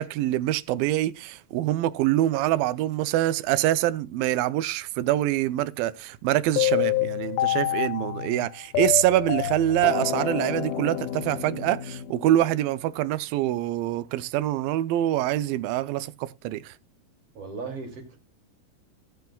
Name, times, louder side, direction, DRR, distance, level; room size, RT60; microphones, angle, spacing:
voice 1, 0.0-16.7, right 14 dB, 80° right, 2.4 m, -25 dB
sound 1, 6.6-12.7, left 12 dB, 80° left, 2.2 m, -28 dB
voice 2, 17.4-18.2, right 4 dB, 45° right, 3.4 m, -36 dB
18.5 x 6.9 x 2.3 m
omnidirectional pair, 4.1 m